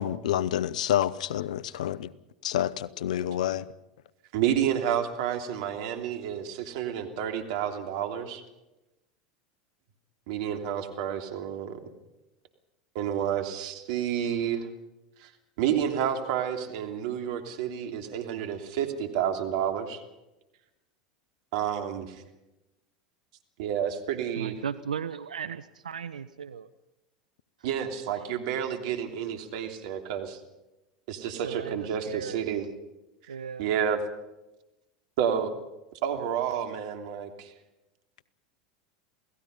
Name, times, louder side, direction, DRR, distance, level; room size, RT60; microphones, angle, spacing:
voice 1, 0.0-2.1 2.4-3.6, left 11 dB, 75° left, 19 dB, 0.9 m, -28 dB
voice 2, 4.3-8.4 10.3-11.8 12.9-14.7 15.2-15.3 15.6-20.0 21.5-22.2 23.6-24.5 27.6-30.4 31.1-32.7 33.2-34.0 35.2-35.5 35.9-37.5, right 9 dB, 65° right, 5 dB, 3.1 m, -30 dB
voice 3, 24.4-26.7 28.1-28.2 31.4-32.4 33.3-33.7, right 7 dB, 85° right, 14 dB, 0.7 m, -36 dB
28.0 x 18.0 x 5.5 m, 0.97 s
hypercardioid pair, 85°, 4 cm